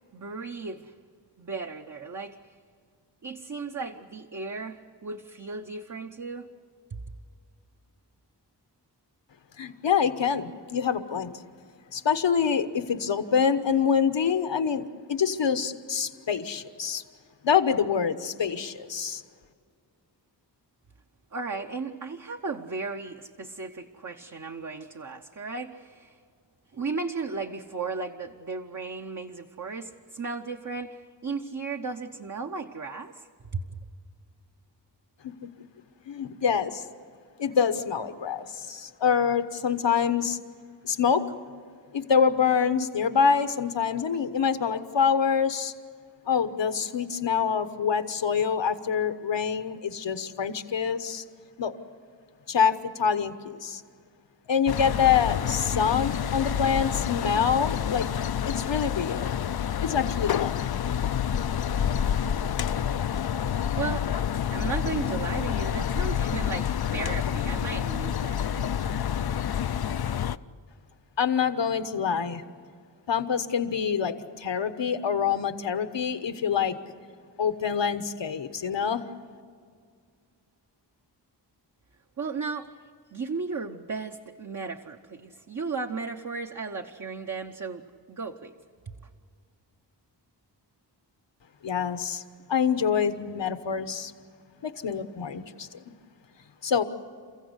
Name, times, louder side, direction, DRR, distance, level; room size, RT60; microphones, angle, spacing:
voice 1, 0.1-0.9 1.4-2.5 3.2-6.5 6.9-7.0 21.3-26.2 26.7-33.8 63.5-64.1 64.5-68.5 68.8-68.9 82.2-82.7 83.1-87.8 88.1-88.5 88.8-88.9, right 4 dB, 40° right, 3 dB, 1.0 m, -35 dB
voice 2, 9.6-11.3 11.9-17.0 17.4-19.2 36.1-36.8 37.4-40.4 40.8-41.2 41.9-45.7 46.3-51.2 51.6-51.7 52.5-53.8 54.5-58.1 58.4-60.9 71.2-72.4 73.1-76.8 77.4-79.0 91.6-92.2 92.5-94.1 94.6-95.8 96.6-96.8, left 7 dB, 80° left, 10 dB, 1.2 m, -26 dB
sound 1, 54.7-70.4, left 9 dB, 60° left, 0.6 m, -28 dB
29.5 x 15.5 x 8.1 m, 2.1 s
wide cardioid pair, 90°, 43 cm